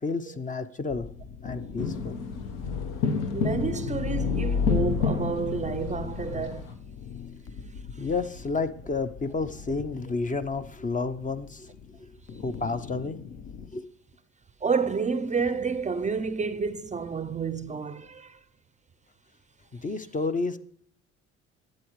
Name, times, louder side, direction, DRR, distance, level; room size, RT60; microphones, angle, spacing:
voice 1, 0.0-1.1 1.4-2.1 8.0-11.7 12.0-12.1 12.4-13.4 13.7-13.9 19.7-20.6, left 4 dB, 25° left, 0.7 m, -31 dB
sound 1, 0.9-13.7, left 6 dB, 55° left, 0.9 m, -35 dB
sound 2, 1.8-6.7, left 5 dB, 75° left, 1.1 m, -31 dB
voice 2, 3.3-6.7 8.0-8.1 14.6-18.4, right 5 dB, 25° right, 0.5 m, -29 dB
11.5 x 7.9 x 3.1 m
supercardioid pair, 65°, 31 cm